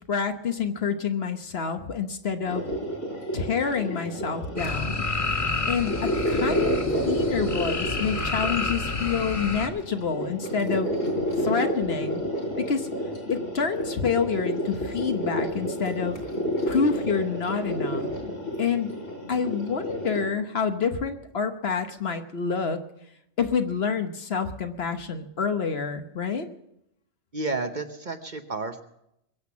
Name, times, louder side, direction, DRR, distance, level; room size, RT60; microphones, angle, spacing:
voice 1, 0.1-2.7 3.3-5.1 5.7-6.8 7.1-10.9 11.4-12.2 12.6-12.9 13.3-16.2 16.7-18.1 18.6-18.9 19.3-22.8 23.4-26.5, left 6 dB, 55° left, 7 dB, 1.2 m, -28 dB
sound 1, 2.5-20.2, equal, 90° left, 3.7 m, -30 dB
sound 2, 4.6-9.7, left 3 dB, 30° left, 1.1 m, -29 dB
voice 2, 27.3-28.8, right 3 dB, 40° right, 7 dB, 1.0 m, -31 dB
22.0 x 8.1 x 7.1 m, 0.80 s
omnidirectional pair, 1.3 m